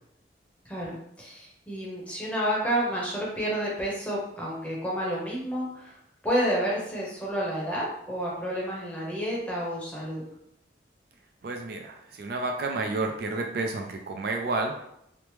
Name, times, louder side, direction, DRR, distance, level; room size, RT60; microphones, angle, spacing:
voice 1, 0.6-5.9 6.2-10.2, equal, 5° left, -5 dB, 0.7 m, -30 dB
voice 2, 11.4-14.9, right 3 dB, 55° right, 3 dB, 0.3 m, -30 dB
3.1 x 2.0 x 3.0 m, 0.76 s
head